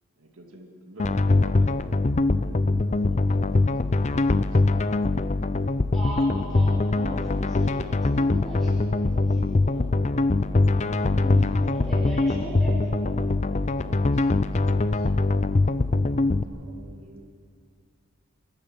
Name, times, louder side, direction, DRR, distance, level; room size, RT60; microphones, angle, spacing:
voice 1, 0.2-1.9 2.2-3.9 4.2-5.0 5.6-5.9 6.2-6.5 13.1-17.2, right 1 dB, 70° right, 1 dB, 2.4 m, -48 dB
sound 1, 1.0-16.4, left 2 dB, 30° left, 0.5 m, -23 dB
voice 2, 5.9-9.9 10.6-12.9, equal, ahead, -7 dB, 4.8 m, -38 dB
27.5 x 12.0 x 7.9 m, 2.3 s
head